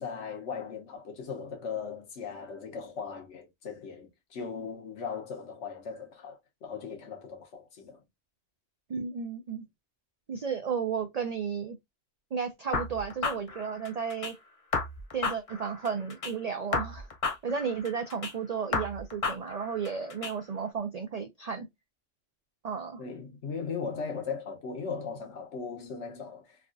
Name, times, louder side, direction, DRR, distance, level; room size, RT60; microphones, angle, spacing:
voice 1, 0.0-8.0 23.0-26.6, left 5 dB, 75° left, 1.2 m, -38 dB
voice 2, 8.9-9.7 10.3-11.8 12.3-14.3 15.1-17.1 17.4-21.7 22.6-23.0, right 6 dB, 65° right, 0.3 m, -33 dB
sound 1, 12.7-14.3 14.7-16.3 16.7-18.3 18.7-20.3, left 4 dB, 45° left, 0.4 m, -33 dB
3.5 x 2.3 x 2.5 m
omnidirectional pair, 1.2 m